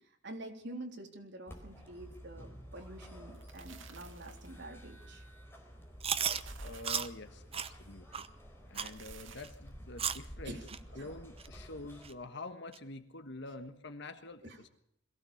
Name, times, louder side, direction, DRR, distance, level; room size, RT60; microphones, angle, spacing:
voice 1, 0.0-5.3 10.4-10.7 10.9-11.1 14.4-14.6, right 1 dB, 60° right, 3 dB, 3.6 m, -47 dB
sound 1, 1.5-12.1, equal, 10° left, 4.4 m, -51 dB
sound 2, 3.2-4.6 6.1-7.2 8.7-9.7, right 7 dB, 75° right, 2.2 m, -54 dB
Chewing mastication, 6.0-6.4 6.9-7.1 7.5-7.7 8.1-8.3 8.8-8.9 9.4-9.5 10.0-10.3 10.7-10.8 11.4-11.5 12.0-12.1 12.7-12.8, right 8 dB, 30° right, 0.9 m, -34 dB
voice 2, 6.6-8.2 8.7-10.6 10.9-14.7, left 2 dB, 60° left, 8 dB, 1.4 m, -46 dB
22.0 x 16.0 x 7.2 m, 0.74 s
head